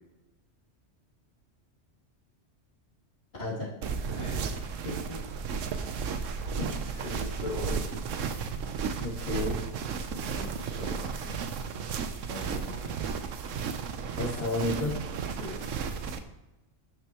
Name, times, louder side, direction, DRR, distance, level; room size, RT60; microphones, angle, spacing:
sound 1, 3.8-16.2, right 5 dB, 90° right, 1.1 m, -34 dB
voice 1, 4.1-5.2 5.8-6.2 7.0-8.0 10.1-11.3 12.3-13.0 15.3-15.7, left 1 dB, 35° left, -3 dB, 2.5 m, -41 dB
voice 2, 6.6-7.0 9.0-9.5 14.2-14.9, left 2 dB, 55° left, -7 dB, 3.2 m, -32 dB
12.0 x 6.6 x 3.0 m, 0.99 s
omnidirectional pair, 1.3 m